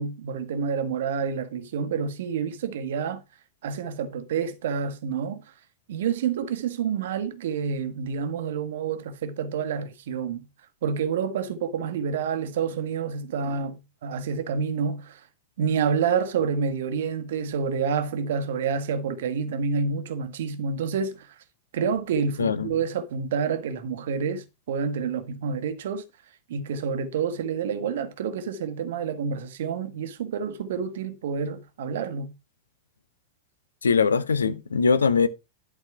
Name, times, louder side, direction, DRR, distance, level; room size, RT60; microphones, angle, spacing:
voice 1, 0.0-3.2 3.6-5.4 5.9-10.5 10.8-15.2 15.6-21.3 21.7-26.0 26.5-32.3, right 6 dB, 60° right, 1.1 m, -28 dB
voice 2, 33.8-35.3, left 5 dB, 70° left, 0.7 m, -21 dB
11.0 x 4.1 x 4.6 m
figure-of-eight pair, 90°, 0 cm